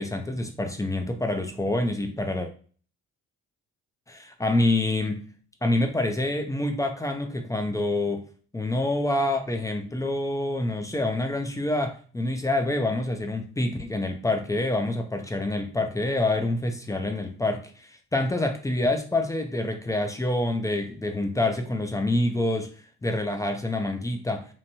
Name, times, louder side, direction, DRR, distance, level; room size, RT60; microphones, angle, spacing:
voice 1, 0.0-2.5 4.1-5.3 5.6-8.2 8.5-22.7 23.0-24.5, left 2 dB, 10° left, 5 dB, 0.4 m, -27 dB
3.0 x 2.1 x 2.7 m, 0.42 s
cardioid pair, 90°, 30 cm